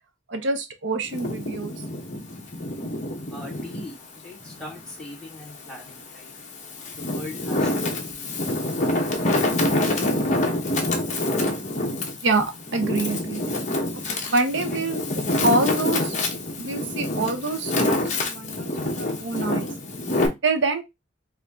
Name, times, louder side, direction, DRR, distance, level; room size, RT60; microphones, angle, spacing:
voice 1, 0.3-1.8 12.2-13.4 13.9-15.0 15.4-16.1 16.6-19.7 20.4-20.8, right 3 dB, 70° right, 0.7 m, -26 dB
Wind, 1.0-3.9 4.4-5.7 6.3-20.3, left 1 dB, 40° left, 1.1 m, -26 dB
voice 2, 3.3-6.3 7.0-8.9 14.7-14.9 15.9-16.0, left 1 dB, 5° left, 1.9 m, -42 dB
4.9 x 2.6 x 3.6 m
head